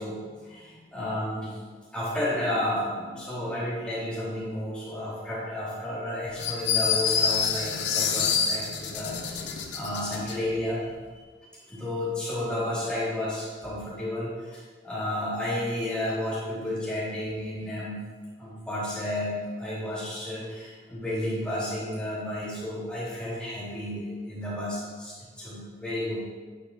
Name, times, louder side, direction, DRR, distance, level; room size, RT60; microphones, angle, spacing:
voice 1, 0.0-1.5 1.9-10.8 11.7-18.0 18.4-26.2, left 1 dB, 5° left, -9 dB, 1.9 m, -32 dB
sound 1, 6.4-10.4, left 6 dB, 85° left, 0.6 m, -27 dB
9.1 x 4.9 x 2.7 m, 1.5 s
head